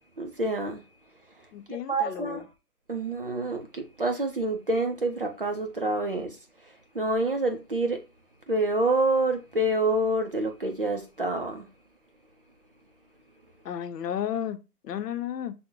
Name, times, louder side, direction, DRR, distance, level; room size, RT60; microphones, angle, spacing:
voice 1, 0.2-0.8 1.7-2.4 2.9-6.4 6.9-8.0 8.5-11.7, right 2 dB, 40° right, 0.4 m, -27 dB
voice 2, 1.5-2.4 13.6-14.6 14.8-15.5, left 10 dB, 85° left, 0.8 m, -32 dB
5.9 x 2.1 x 3.7 m
hypercardioid pair, 165°, 47 cm